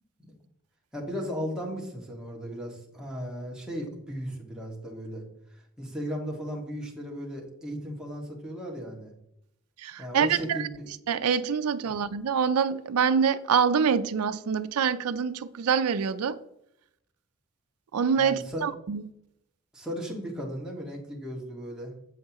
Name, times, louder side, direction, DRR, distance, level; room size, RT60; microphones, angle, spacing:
voice 1, 0.9-5.2 5.8-9.1 10.0-10.9 11.8-11.9 18.2-18.7 19.7-21.9, equal, 5° right, 1.7 m, -36 dB
voice 2, 9.8-10.6 11.1-16.4 17.9-19.0, right 6 dB, 85° right, 0.4 m, -25 dB
7.9 x 7.7 x 2.9 m
head